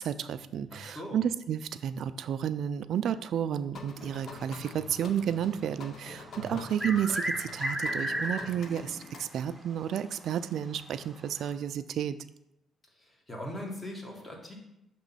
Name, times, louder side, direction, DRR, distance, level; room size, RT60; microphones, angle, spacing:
voice 1, 0.0-12.2, right 9 dB, 70° right, 13 dB, 0.3 m, -31 dB
voice 2, 0.7-1.2 6.4-6.6 13.0-14.5, left 1 dB, 25° left, 0 dB, 1.5 m, -40 dB
sound 1, 3.7-9.2, left 4 dB, 60° left, 0.6 m, -47 dB
sound 2, 6.5-8.7 9.1-9.2 10.1-10.2 11.4-11.5, equal, 10° left, 1.3 m, -32 dB
5.9 x 3.0 x 5.6 m, 0.85 s
cardioid pair, 90°, 0 cm